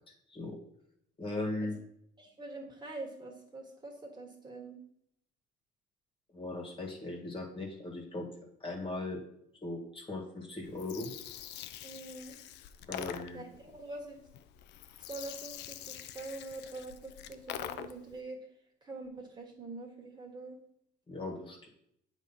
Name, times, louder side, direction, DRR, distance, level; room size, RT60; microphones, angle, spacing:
voice 1, 1.2-1.7 6.3-8.3 8.6-9.2 9.6-11.1 12.9-13.4 21.1-21.7, left 2 dB, 25° left, 0 dB, 1.7 m, -38 dB
voice 2, 2.2-4.8 11.8-12.4 13.3-14.2 15.1-18.4 18.8-20.6, right 2 dB, 25° right, 0 dB, 1.7 m, -45 dB
Gurgling, 10.6-18.2, left 11 dB, 65° left, 0.5 m, -45 dB
7.6 x 3.0 x 5.5 m, 0.73 s
supercardioid pair, 95°, 19 cm